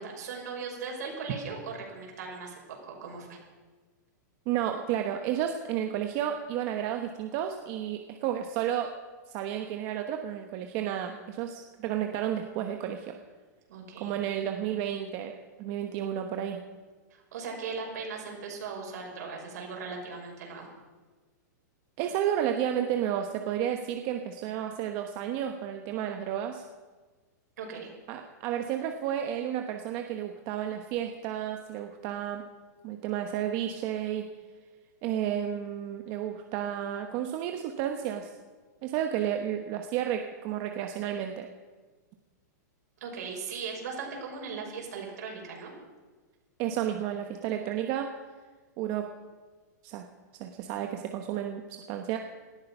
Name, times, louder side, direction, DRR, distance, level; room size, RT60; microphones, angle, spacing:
voice 1, 0.0-3.4 13.7-14.1 17.1-20.7 27.6-27.9 43.0-45.7, right 5 dB, 65° right, 0 dB, 5.8 m, -38 dB
voice 2, 4.5-8.9 9.3-13.1 14.0-15.3 15.6-16.6 22.0-26.6 28.1-32.5 32.8-34.3 35.0-38.3 38.8-41.5 46.6-48.1 48.8-49.1 49.8-50.0 50.4-52.2, right 10 dB, 35° right, 5 dB, 1.0 m, -32 dB
18.5 x 13.0 x 5.6 m, 1.4 s
supercardioid pair, 160°, 10 cm